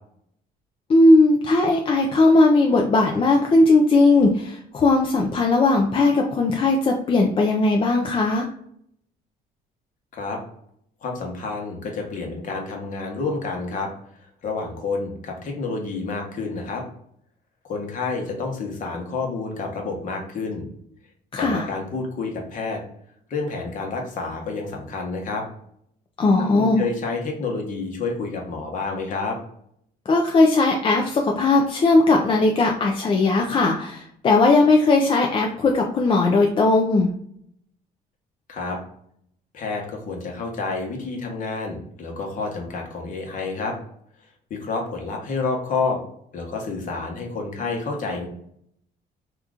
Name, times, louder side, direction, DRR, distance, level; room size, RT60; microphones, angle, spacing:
voice 1, 0.9-8.5 21.3-21.7 26.2-26.8 30.1-37.1, left 2 dB, 30° left, 1 dB, 0.4 m, -18 dB
voice 2, 11.0-13.9 14.4-16.8 17.7-20.7 21.4-22.8 23.3-25.4 26.5-29.4 38.5-38.8 39.5-43.7 44.5-46.0 46.3-48.3, left 3 dB, 50° left, 1 dB, 1.0 m, -29 dB
2.9 x 2.4 x 3.5 m, 0.69 s
cardioid pair, 110°, 17 cm